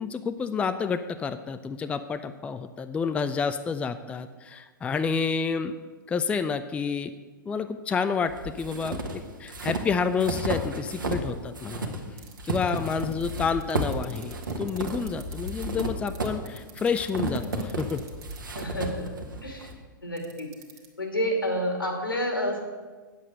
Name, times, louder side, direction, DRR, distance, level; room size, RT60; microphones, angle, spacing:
voice 1, 0.0-5.7 6.1-7.1 7.5-9.0 9.4-11.9 12.4-18.0, left 5 dB, 10° left, 10 dB, 0.4 m, -29 dB
sound 1, 8.3-11.3 11.6-19.7, right 2 dB, 75° right, 1.4 m, -33 dB
sound 2, 12.2-15.8 16.1-18.6 20.2-20.9, right 10 dB, 45° right, 1.7 m, -46 dB
voice 2, 18.5-19.1 19.4-19.7 20.0-20.5 21.0-22.6, equal, 90° left, 2 dB, 2.5 m, -29 dB
9.2 x 7.7 x 6.4 m, 1.4 s
figure-of-eight pair, 105°, 11 cm